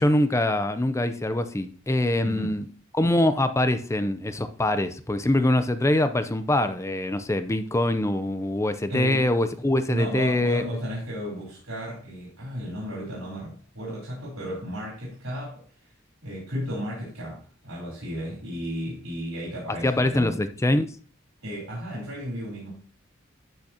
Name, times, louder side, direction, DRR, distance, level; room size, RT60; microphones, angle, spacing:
voice 1, 0.0-2.6 2.9-10.6 19.8-20.9, left 1 dB, 15° left, 0.6 m, -24 dB
voice 2, 2.2-2.6 8.9-9.3 9.9-15.6 16.2-20.4 21.4-22.7, equal, 85° right, 3.8 m, -34 dB
12.0 x 6.3 x 2.9 m
head